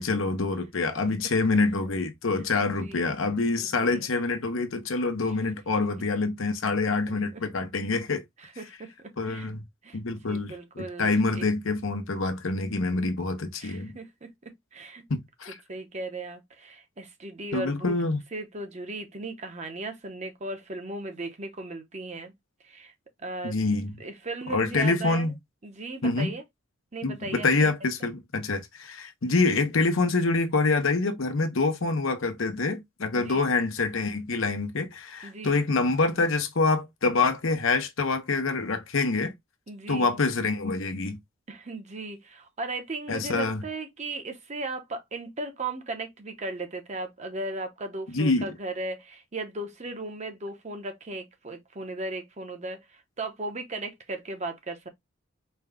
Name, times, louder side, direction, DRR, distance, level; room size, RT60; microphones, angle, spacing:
voice 1, 0.0-8.2 9.2-9.6 9.9-10.5 11.0-14.0 15.1-15.5 17.5-18.2 23.4-23.9 24.5-25.3 26.0-26.3 27.0-39.3 39.9-41.2 43.1-43.6 48.1-48.5, left 3 dB, 90° left, 0.8 m, -26 dB
voice 2, 2.6-3.1 3.6-4.1 7.1-7.4 8.4-9.5 9.8-10.0 10.3-11.5 13.6-15.0 15.7-17.9 18.3-22.3 22.6-22.9 23.2-23.5 24.0-25.3 25.6-26.4 26.9-27.7 33.1-33.4 35.2-35.6 39.7-40.1 41.5-54.9, right 2 dB, 35° right, 0.8 m, -37 dB
4.4 x 2.3 x 3.6 m
head